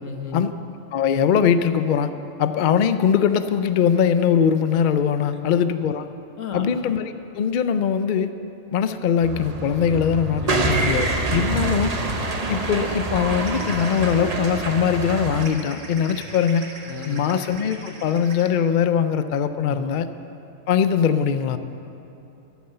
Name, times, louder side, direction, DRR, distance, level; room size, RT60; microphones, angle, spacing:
voice 1, 0.0-0.4 6.4-6.6 10.3-10.7 11.3-11.6 16.1-16.2 16.9-17.2 19.7-19.9, left 5 dB, 80° left, 4 dB, 1.6 m, -34 dB
voice 2, 0.9-2.1 2.4-6.1 6.5-8.3 8.7-11.9 12.5-16.7 17.1-20.1 20.7-21.6, left 7 dB, 60° left, 11 dB, 0.5 m, -21 dB
sound 1, 9.2-15.5, right 2 dB, 35° right, 0.9 m, -26 dB
sound 2, 13.4-14.1 15.4-18.5, right 2 dB, 70° right, 1.9 m, -40 dB
13.0 x 10.5 x 6.8 m, 2.8 s
omnidirectional pair, 1.3 m